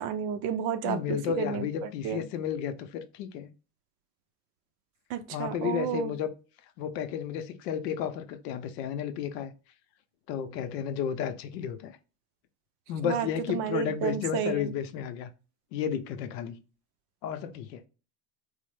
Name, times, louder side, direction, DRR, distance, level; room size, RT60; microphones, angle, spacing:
voice 1, 0.0-1.6 2.0-2.2 5.1-6.1 13.0-14.7, right 8 dB, 50° right, 0.4 m, -31 dB
voice 2, 0.8-3.5 5.3-6.3 6.8-9.5 10.3-12.0 12.9-15.3 15.7-16.6 17.2-17.8, left 8 dB, 75° left, 0.7 m, -32 dB
3.1 x 2.0 x 3.1 m
supercardioid pair, 120°, 50 cm